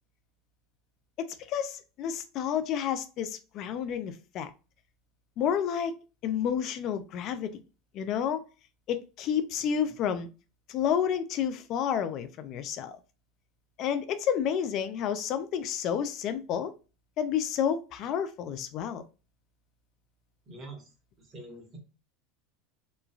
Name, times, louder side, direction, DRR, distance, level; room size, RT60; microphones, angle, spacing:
voice 1, 1.2-4.5 5.4-5.9 6.2-7.5 7.9-8.4 8.9-10.3 10.7-13.0 13.8-16.7 17.2-19.0, left 8 dB, 50° left, 0.3 m, -30 dB
voice 2, 9.6-9.9 20.5-20.9 21.2-21.8, right 2 dB, 35° right, 1.2 m, -46 dB
3.0 x 2.3 x 2.3 m
supercardioid pair, 110°, 0 cm